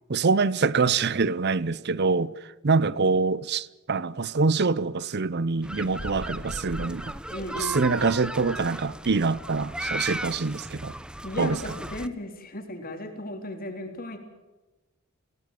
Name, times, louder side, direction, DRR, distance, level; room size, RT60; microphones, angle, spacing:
voice 1, 0.1-2.3 2.6-7.1 7.6-10.9 11.4-11.6, right 4 dB, 50° right, 0.7 m, -25 dB
sound 1, 5.6-12.1, right 1 dB, 5° right, 0.8 m, -36 dB
voice 2, 7.3-8.0 10.9-14.2, left 1 dB, 45° left, 3.8 m, -35 dB
22.0 x 17.5 x 9.1 m
head